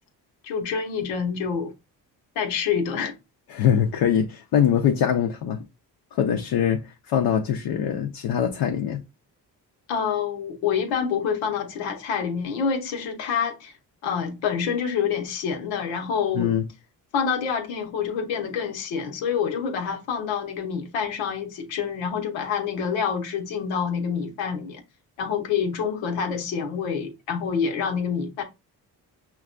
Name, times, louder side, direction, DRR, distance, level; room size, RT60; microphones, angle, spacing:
voice 1, 0.4-1.7 2.4-3.1 9.9-13.7 14.0-16.5 17.1-24.8 25.2-28.4, left 6 dB, 80° left, 0.9 m, -27 dB
voice 2, 3.5-5.6 6.1-9.0 16.3-16.7, left 9 dB, 60° left, 0.7 m, -23 dB
5.7 x 2.3 x 2.4 m
supercardioid pair, 55°, 45 cm